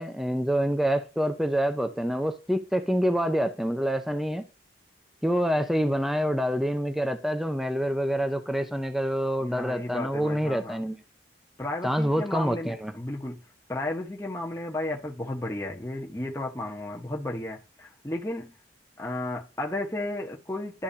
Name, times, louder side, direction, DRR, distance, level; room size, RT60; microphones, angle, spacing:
voice 1, 0.0-4.5 5.2-11.0 11.8-12.9, equal, ahead, 0.6 m, -26 dB
voice 2, 9.4-10.8 11.6-13.4 13.7-18.5 19.0-20.8, left 1 dB, 15° left, 1.2 m, -33 dB
11.5 x 4.0 x 2.7 m
head